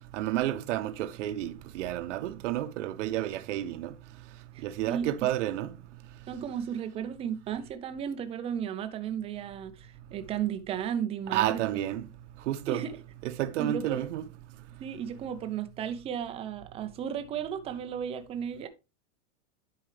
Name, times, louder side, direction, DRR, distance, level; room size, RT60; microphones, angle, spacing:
voice 1, 0.1-3.9 4.6-5.7 11.3-12.0 12.5-12.8 13.2-14.2, right 13 dB, 65° right, 0.9 m, -30 dB
voice 2, 4.5-5.1 6.3-11.6 12.7-13.0 13.6-14.0 14.8-18.7, right 8 dB, 15° right, 0.5 m, -34 dB
10.5 x 4.7 x 3.2 m
supercardioid pair, 155°, 38 cm